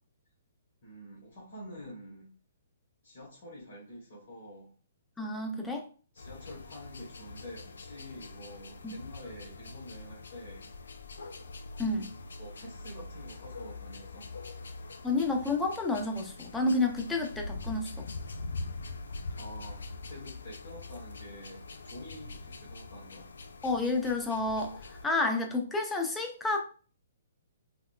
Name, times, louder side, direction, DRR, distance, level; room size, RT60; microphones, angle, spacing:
voice 1, 0.8-2.3 3.0-4.7 6.1-10.7 12.4-14.3 19.4-23.3, left 1 dB, 60° left, -6 dB, 1.2 m, -47 dB
voice 2, 5.2-5.9 8.8-8.9 11.8-12.1 15.0-18.1 23.6-26.6, left 2 dB, 10° left, 2 dB, 0.5 m, -30 dB
sound 1, 6.2-25.1, left 3 dB, 75° left, 0.3 m, -43 dB
3.6 x 2.1 x 2.3 m, 0.39 s
hypercardioid pair, 130°, 0 cm